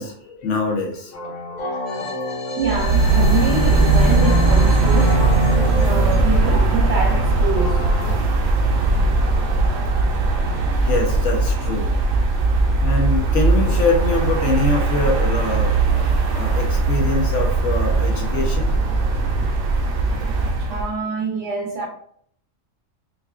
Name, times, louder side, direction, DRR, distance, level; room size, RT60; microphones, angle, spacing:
voice 1, 0.0-2.8 10.8-11.9 12.8-15.8 16.3-18.8, left 3 dB, 70° left, 1.3 m, -24 dB
sound 1, 1.1-8.2, left 2 dB, 90° left, 1.2 m, -30 dB
voice 2, 2.6-5.1 5.8-7.8 20.6-21.9, right 4 dB, 65° right, 1.0 m, -26 dB
sound 2, 2.6-20.9, right 3 dB, 85° right, 1.1 m, -19 dB
4.5 x 2.6 x 2.4 m
omnidirectional pair, 1.3 m